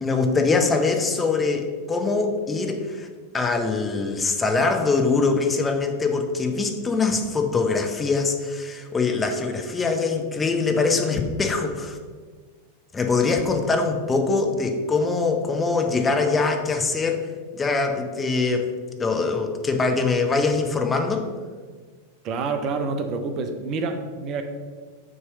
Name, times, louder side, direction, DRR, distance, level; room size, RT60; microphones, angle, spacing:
voice 1, 0.0-3.1 3.3-12.0 12.9-17.2 17.5-18.7 19.0-21.2, left 4 dB, 15° left, 4 dB, 0.7 m, -23 dB
voice 2, 22.2-24.4, right 4 dB, 35° right, 6 dB, 0.5 m, -27 dB
6.1 x 3.1 x 5.7 m, 1.5 s
figure-of-eight pair, 90°, 0 cm